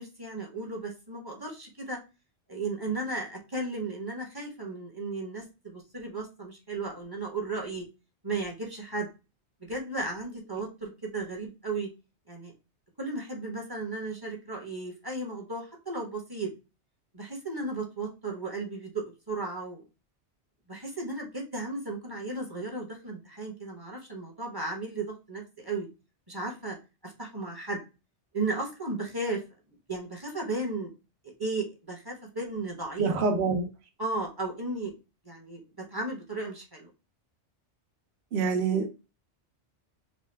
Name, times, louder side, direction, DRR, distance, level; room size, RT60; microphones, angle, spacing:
voice 1, 0.0-2.0 2.5-7.8 8.2-9.1 9.6-11.9 12.3-12.5 13.0-16.5 17.1-19.8 20.7-25.9 26.3-26.8 27.0-27.8 28.3-29.4 29.9-30.9 31.4-33.1 34.0-34.9 35.2-35.6 35.9-36.9, right 3 dB, 20° right, 1.0 m, -35 dB
voice 2, 33.0-33.7 38.3-38.9, right 4 dB, 65° right, 1.0 m, -26 dB
4.0 x 2.2 x 3.3 m
omnidirectional pair, 1.2 m